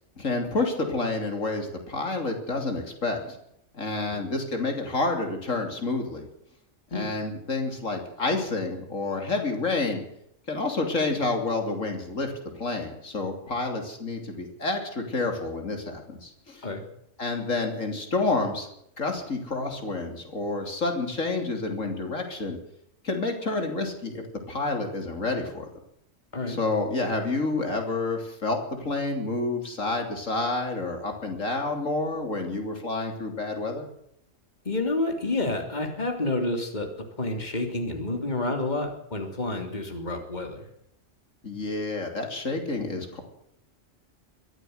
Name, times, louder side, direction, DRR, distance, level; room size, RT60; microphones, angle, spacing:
voice 1, 0.2-3.4 3.7-6.3 6.9-10.0 10.5-16.7 17.2-18.7 19.0-22.6 23.0-25.7 26.5-33.9 41.4-43.2, left 3 dB, 80° left, 4 dB, 3.7 m, -29 dB
voice 2, 34.6-36.9 37.2-40.6, left 2 dB, 35° left, 4 dB, 3.3 m, -29 dB
22.5 x 14.5 x 8.0 m, 0.76 s
omnidirectional pair, 1.3 m